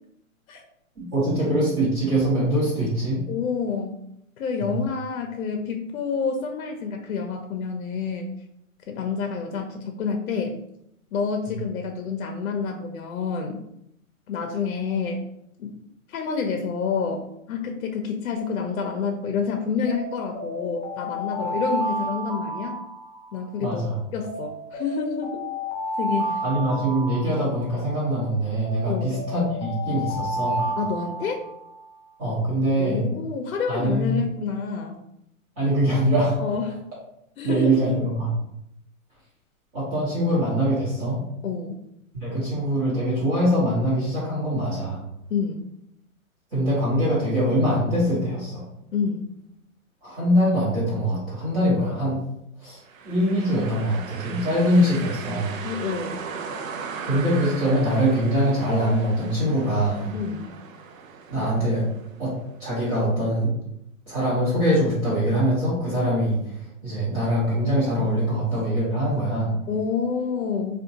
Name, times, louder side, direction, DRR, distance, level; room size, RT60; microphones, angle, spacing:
voice 1, 1.0-3.2 4.6-4.7 23.6-24.0 26.4-30.7 32.2-33.0 33.7-34.2 35.6-36.4 37.4-38.3 39.7-41.2 42.1-45.0 46.5-48.6 50.0-52.2 52.6-52.8 53.0-55.6 57.0-60.1 61.3-61.9 62.2-62.3 62.6-63.5 64.1-69.6, equal, 25° right, -9 dB, 0.9 m, -23 dB
voice 2, 3.3-4.0 4.4-8.3 8.9-10.6 11.1-13.6 14.3-15.2 15.6-15.8 16.1-22.7 23.3-23.8 24.1-25.4 26.0-26.4 28.9-29.2 30.8-31.4 32.8-35.0 36.4-36.8 37.4-37.8 41.4-41.8 45.3-45.6 48.9-49.2 55.6-56.2 60.1-60.5 69.7-70.8, left 5 dB, 70° left, 3 dB, 0.6 m, -28 dB
Alarm, 19.8-23.6 24.2-27.9 28.6-31.8, right 1 dB, 30° left, 0.9 m, -31 dB
sound 1, 52.9-62.7, right 6 dB, 70° right, 0.5 m, -38 dB
3.5 x 2.3 x 2.7 m, 0.78 s
hypercardioid pair, 175°, 42 cm